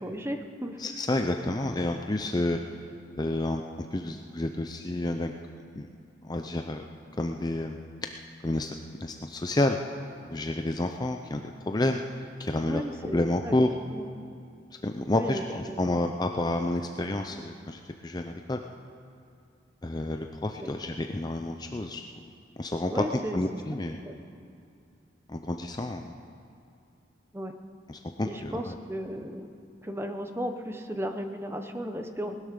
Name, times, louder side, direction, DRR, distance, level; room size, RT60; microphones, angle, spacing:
voice 1, 0.0-0.8 12.6-14.1 15.1-16.1 20.6-20.7 22.9-23.4 24.0-24.2 27.3-27.5 28.2-29.5 29.8-32.4, equal, 15° right, 6 dB, 0.9 m, -35 dB
voice 2, 0.8-2.6 3.2-3.6 3.9-5.3 5.7-5.9 6.2-6.8 7.2-7.8 8.4-8.7 9.0-9.8 10.2-12.0 12.4-13.7 14.8-18.6 19.8-22.0 22.6-24.0 25.3-26.0 27.9-28.8, left 1 dB, 20° left, 4 dB, 0.5 m, -29 dB
19.5 x 10.5 x 6.7 m, 2.5 s
head